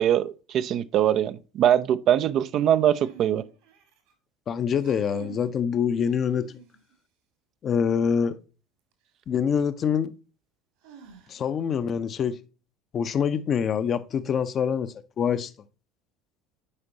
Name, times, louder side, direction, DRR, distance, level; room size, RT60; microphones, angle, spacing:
voice 1, 0.0-3.4, right 10 dB, 45° right, 0.4 m, -22 dB
sound 1, 2.9-4.1 4.7-5.6 6.0-6.9 8.9-9.0 10.8-11.7, right 6 dB, 65° right, 1.9 m, -48 dB
voice 2, 4.5-6.4 7.6-8.4 9.3-10.1 11.3-12.3 12.9-15.5, left 7 dB, 35° left, 0.7 m, -25 dB
9.7 x 5.1 x 2.9 m
figure-of-eight pair, 65°, 0 cm